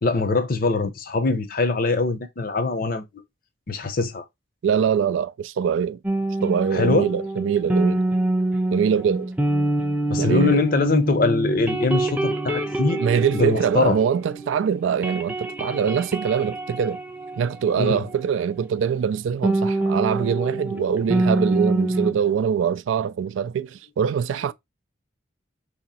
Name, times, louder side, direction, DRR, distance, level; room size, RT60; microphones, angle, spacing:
voice 1, 0.0-3.1 3.7-4.2 6.7-7.1 10.1-13.0 13.3-14.0 17.8-18.0, left 3 dB, 45° left, 0.6 m, -22 dB
voice 2, 4.6-6.0 6.4-8.0 8.7-9.3 10.2-10.6 13.0-17.0 17.4-24.5, right 7 dB, 75° right, 0.3 m, -23 dB
sound 1, 6.0-14.5 14.8-18.3 19.4-22.1, right 1 dB, 10° right, 0.4 m, -25 dB
2.9 x 2.8 x 4.0 m
head